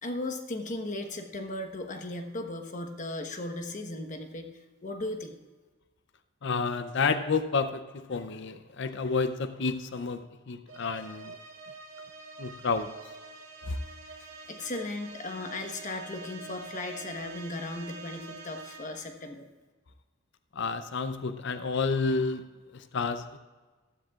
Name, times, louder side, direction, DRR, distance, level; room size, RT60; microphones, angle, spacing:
voice 1, 0.0-4.5 4.8-5.4 14.2-19.5, left 2 dB, 40° left, 5 dB, 1.1 m, -37 dB
voice 2, 6.4-11.4 12.4-12.9 13.6-13.8 20.5-22.4 22.7-23.4, left 4 dB, 60° left, 10 dB, 0.6 m, -30 dB
sound 1, 10.7-19.2, right 4 dB, 80° right, 2.3 m, -46 dB
15.0 x 13.0 x 2.4 m, 1.3 s
head